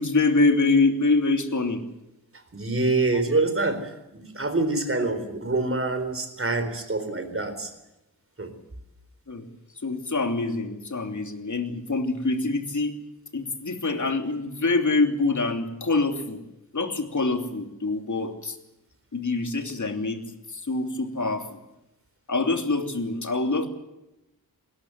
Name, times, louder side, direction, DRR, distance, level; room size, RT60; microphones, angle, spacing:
voice 1, 0.0-1.8 9.3-9.5 9.8-12.9 13.3-16.4 16.7-18.6 19.1-20.2 20.5-21.6 22.3-23.7, left 3 dB, 50° left, 5 dB, 3.0 m, -25 dB
voice 2, 2.5-7.7 8.4-8.5, right 2 dB, 35° right, 9 dB, 4.1 m, -26 dB
21.0 x 19.0 x 8.1 m, 0.92 s
wide cardioid pair, 110°, 37 cm